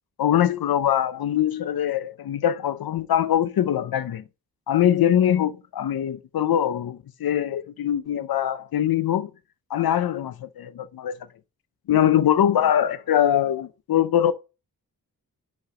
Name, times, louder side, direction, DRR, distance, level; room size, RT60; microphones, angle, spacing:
voice 1, 0.2-4.2 4.7-9.3 9.7-11.2 11.9-14.3, left 10 dB, 85° left, 0.6 m, -22 dB
5.9 x 5.8 x 4.9 m
wide cardioid pair, 90°, 35 cm